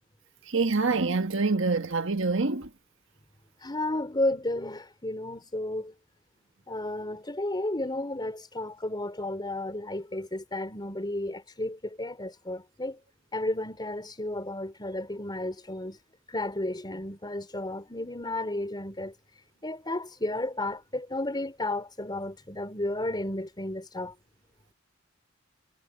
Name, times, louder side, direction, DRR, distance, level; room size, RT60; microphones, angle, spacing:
voice 1, 0.5-2.7, right 3 dB, 65° right, 1.6 m, -26 dB
voice 2, 3.6-5.9 6.7-13.0 13.3-16.0 16.3-19.1 19.6-24.1, left 1 dB, 20° left, 3.9 m, -32 dB
head